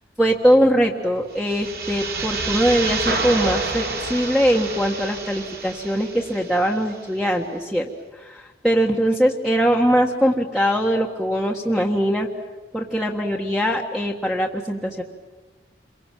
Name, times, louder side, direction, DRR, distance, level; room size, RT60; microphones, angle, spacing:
voice 1, 0.2-12.3 12.7-15.0, equal, ahead, -2 dB, 1.6 m, -21 dB
sound 1, 1.3-7.0, right 4 dB, 60° right, 3.8 m, -30 dB
sound 2, 3.1-5.5, right 2 dB, 80° right, 3.5 m, -30 dB
28.0 x 23.0 x 7.6 m, 1.3 s
head